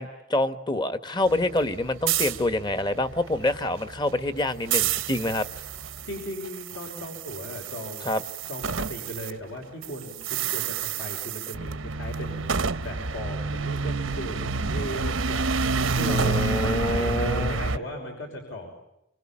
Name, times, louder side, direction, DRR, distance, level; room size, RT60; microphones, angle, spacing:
voice 1, 0.0-5.5 8.0-8.2 16.0-17.6, left 1 dB, 20° left, 12 dB, 1.2 m, -26 dB
sound 1, 1.2-9.3 9.6-17.8, right 5 dB, 80° right, 1.0 m, -29 dB
voice 2, 6.0-8.2 8.5-18.7, equal, 75° left, 3 dB, 5.7 m, -37 dB
27.5 x 25.0 x 8.6 m, 0.84 s
head